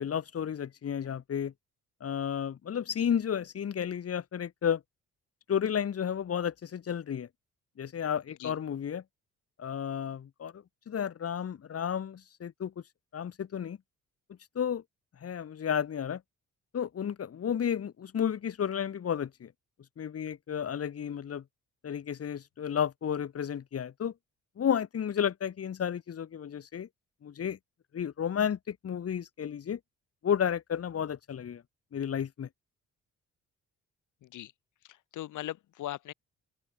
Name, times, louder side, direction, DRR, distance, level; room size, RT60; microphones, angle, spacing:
voice 1, 0.0-1.5 2.0-4.8 5.5-7.3 7.8-9.0 9.6-12.7 13.1-13.8 14.5-14.8 15.2-16.2 16.7-19.5 20.0-21.4 21.8-24.1 24.6-26.9 27.2-27.6 27.9-29.8 30.2-31.6 31.9-32.5, left 8 dB, 50° left, 2.6 m, -32 dB
voice 2, 34.2-34.5 34.9-36.1, left 14 dB, 80° left, 4.4 m, -39 dB
open air
cardioid pair, 90°, 30 cm